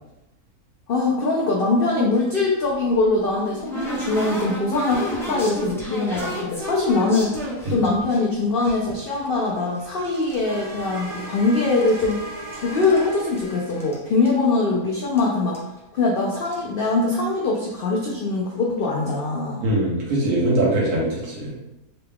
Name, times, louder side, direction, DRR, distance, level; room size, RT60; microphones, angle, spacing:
voice 1, 0.9-7.4 7.7-12.2 12.5-15.6 15.9-19.6, left 3 dB, 80° left, -2 dB, 0.5 m, -22 dB
sound 1, 2.7-8.2 8.6-10.4 10.7-11.4 11.7-13.1 13.4-13.5 13.7-14.0 14.3-14.4 15.2-15.3 15.5-15.8 16.3-16.6, left 1 dB, 5° left, 0.4 m, -32 dB
sound 2, 10.4-14.4, right 1 dB, 60° right, 1.4 m, -37 dB
voice 2, 19.6-21.5, right 1 dB, 80° right, -4 dB, 1.6 m, -22 dB
3.8 x 2.2 x 3.5 m, 0.91 s
omnidirectional pair, 1.6 m